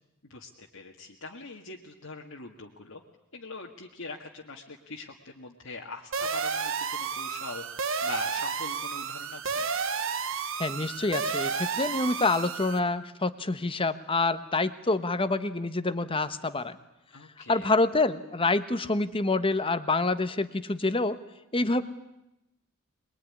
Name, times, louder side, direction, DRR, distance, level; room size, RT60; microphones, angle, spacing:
voice 1, 0.2-3.0 3.3-9.7 17.1-17.8, left 3 dB, 65° left, -1 dB, 1.9 m, -42 dB
sound 1, 6.1-12.8, right 5 dB, 60° right, 1.2 m, -31 dB
voice 2, 10.6-16.8 17.5-21.2 21.5-21.8, left 2 dB, 25° left, 12 dB, 1.1 m, -27 dB
23.0 x 22.0 x 9.9 m, 0.89 s
head